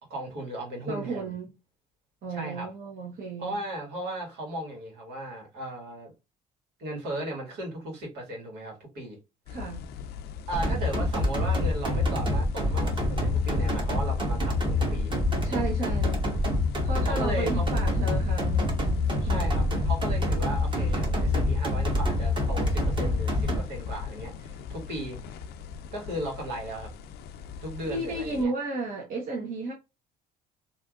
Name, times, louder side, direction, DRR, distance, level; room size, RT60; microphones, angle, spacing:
voice 1, 0.1-1.3 2.3-2.7 3.4-6.1 6.8-9.2 10.5-15.2 17.1-17.7 19.2-25.4 25.9-26.9 27.6-28.5, right 1 dB, 80° right, 1.7 m, -36 dB
voice 2, 0.9-1.5 2.2-3.6 9.5-9.8 15.4-16.2 16.8-19.4 27.8-29.7, right 3 dB, 55° right, 1.0 m, -33 dB
sound 1, 9.5-28.4, left 6 dB, 70° left, 0.4 m, -40 dB
sound 2, 10.5-23.6, left 2 dB, 30° right, 1.2 m, -26 dB
3.3 x 2.6 x 2.4 m
cardioid pair, 110°, 17 cm